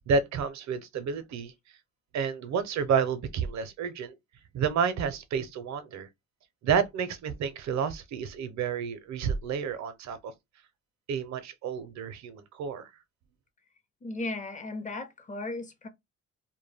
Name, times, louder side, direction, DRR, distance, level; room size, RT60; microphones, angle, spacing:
voice 1, 0.1-1.5 2.1-4.2 4.5-6.1 6.6-10.3 11.1-12.9, right 6 dB, 65° right, 0.6 m, -30 dB
voice 2, 14.0-15.9, left 2 dB, 25° left, 0.6 m, -36 dB
2.2 x 2.1 x 3.3 m
cardioid pair, 90°, 30 cm